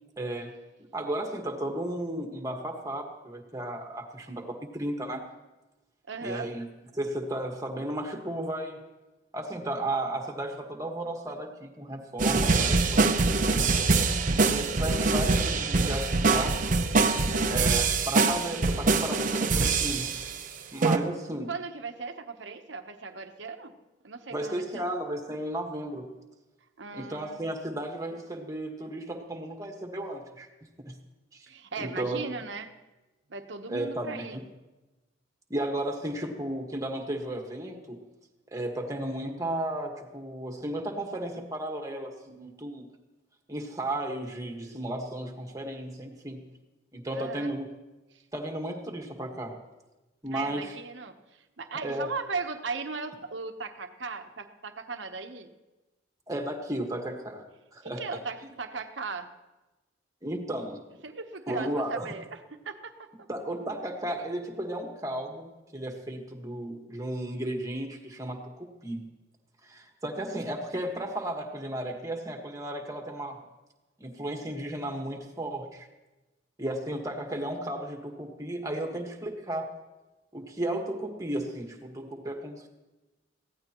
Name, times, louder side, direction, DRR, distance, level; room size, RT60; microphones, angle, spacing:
voice 1, 0.2-0.5 0.8-5.2 6.2-6.7 6.9-8.8 9.3-14.0 14.5-16.6 17.4-20.1 20.7-21.5 24.3-26.1 26.9-30.5 30.8-30.9 31.3-31.5 31.8-32.2 33.7-34.4 35.5-38.0 38.5-42.9 43.5-46.4 46.9-47.7 48.3-49.5 50.2-50.7 51.8-52.1 56.3-57.4 57.7-58.2 60.2-60.8 61.5-62.1 63.3-69.0 69.6-73.4 74.0-75.9 76.6-79.7 80.3-82.7, right 1 dB, 20° right, 2 dB, 1.6 m, -34 dB
voice 2, 6.1-6.5 17.3-17.7 21.5-23.7 24.0-24.8 26.8-27.4 31.5-32.7 33.3-34.4 47.1-47.5 50.3-55.5 57.8-59.3 61.0-62.4 62.6-63.3, right 4 dB, 75° right, 7 dB, 1.0 m, -37 dB
sound 1, 12.2-20.4 20.8-21.0, right 3 dB, 45° right, 0.8 m, -24 dB
22.0 x 16.0 x 3.0 m, 1.1 s
head